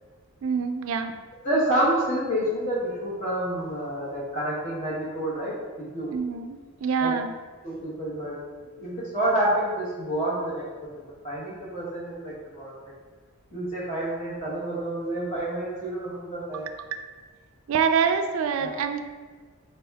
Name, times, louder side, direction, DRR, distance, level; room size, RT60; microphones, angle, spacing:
voice 1, 0.4-1.1 6.1-7.3 16.9-17.0 17.7-19.0, right 6 dB, 65° right, 7 dB, 0.3 m, -25 dB
voice 2, 1.4-6.1 7.0-7.1 7.6-8.4 8.6-10.6 10.9-12.7 13.5-16.7 18.6-18.7, right 1 dB, 35° left, -7 dB, 1.0 m, -28 dB
4.3 x 3.4 x 3.5 m, 1.4 s
head